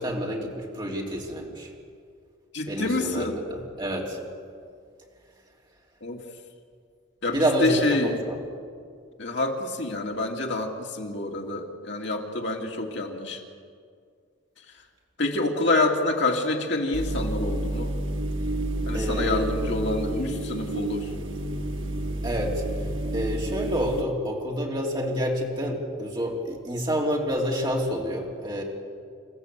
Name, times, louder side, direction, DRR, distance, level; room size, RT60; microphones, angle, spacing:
voice 1, 0.0-1.7 2.7-4.2 7.3-8.4 18.9-19.5 22.2-22.6 23.1-28.6, equal, 20° right, -1 dB, 3.1 m, -28 dB
voice 2, 2.5-3.4 6.0-6.2 7.2-8.2 9.2-13.4 15.2-17.9 18.9-21.1, left 2 dB, 60° left, 1 dB, 2.6 m, -27 dB
sound 1, 16.9-24.0, right 1 dB, 65° right, 1.3 m, -30 dB
27.5 x 14.5 x 8.3 m, 2.2 s
head